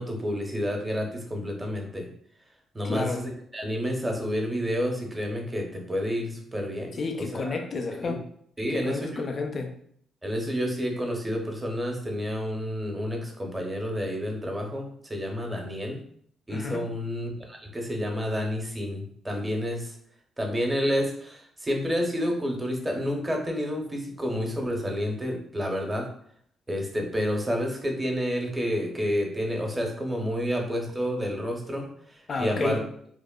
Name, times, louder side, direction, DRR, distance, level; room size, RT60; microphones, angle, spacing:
voice 1, 0.0-2.1 2.7-7.0 7.3-7.6 8.0-8.1 8.6-9.3 10.2-16.0 16.5-20.0 20.4-26.1 26.7-32.8, equal, 15° right, 1 dB, 0.6 m, -29 dB
voice 2, 2.8-3.2 7.0-8.2 8.7-9.7 16.5-16.8 32.3-32.8, left 3 dB, 45° left, 5 dB, 0.4 m, -31 dB
2.9 x 2.1 x 2.2 m, 0.65 s
cardioid pair, 90°, 0 cm